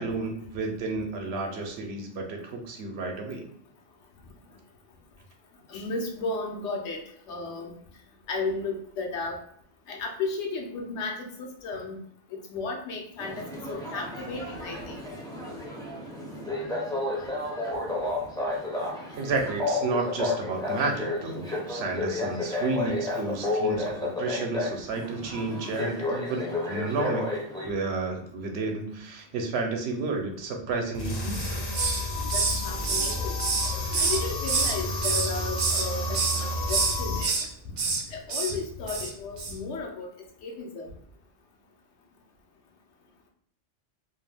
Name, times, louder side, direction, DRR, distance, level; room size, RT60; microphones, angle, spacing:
voice 1, 0.0-3.5 19.2-27.4 27.6-31.6, right 3 dB, 70° right, 3 dB, 0.8 m, -31 dB
voice 2, 5.7-7.0 7.3-7.7 8.3-9.4 9.9-12.0 12.3-14.9 32.3-33.4 34.0-37.3 38.1-40.1 40.4-40.9, left 3 dB, 85° left, 1 dB, 0.9 m, -34 dB
sound 1, 13.2-27.7, left 2 dB, 5° left, 0.3 m, -32 dB
sound 2, 30.9-37.2, left 2 dB, 45° left, 0.6 m, -31 dB
Hiss, 31.3-32.0 32.3-34.8 35.0-35.9 36.1-36.4 36.7-37.4 37.8-38.0 38.3-38.5 38.9-39.1 39.4-39.5, right 4 dB, 55° right, 0.5 m, -27 dB
2.5 x 2.1 x 3.2 m, 0.65 s
omnidirectional pair, 1.2 m